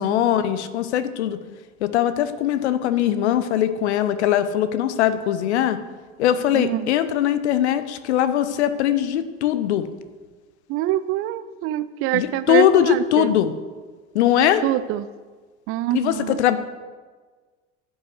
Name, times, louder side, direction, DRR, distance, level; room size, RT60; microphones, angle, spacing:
voice 1, 0.0-1.4 1.8-5.8 6.2-9.9 12.1-13.5 14.1-14.6 15.9-16.6, left 11 dB, 60° left, 12 dB, 0.8 m, -21 dB
voice 2, 6.5-6.9 10.7-13.3 14.6-15.1 15.7-16.4, right 14 dB, 35° right, 14 dB, 0.5 m, -25 dB
10.5 x 5.6 x 7.5 m, 1.4 s
figure-of-eight pair, 65°, 37 cm